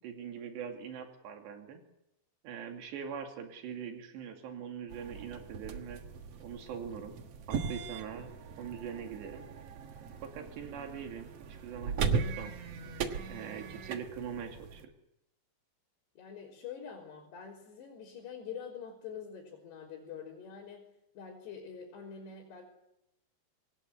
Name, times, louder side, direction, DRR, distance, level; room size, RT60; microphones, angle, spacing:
voice 1, 0.0-1.8 2.4-6.0 6.4-7.1 7.5-8.3 8.6-9.4 10.2-12.6 13.3-14.8, right 7 dB, 85° right, 4 dB, 4.7 m, -42 dB
sound 1, 4.9-14.9, right 5 dB, 65° right, 1.5 m, -38 dB
voice 2, 16.2-22.7, left 7 dB, 75° left, -4 dB, 5.9 m, -45 dB
25.0 x 18.0 x 8.2 m, 0.84 s
omnidirectional pair, 4.9 m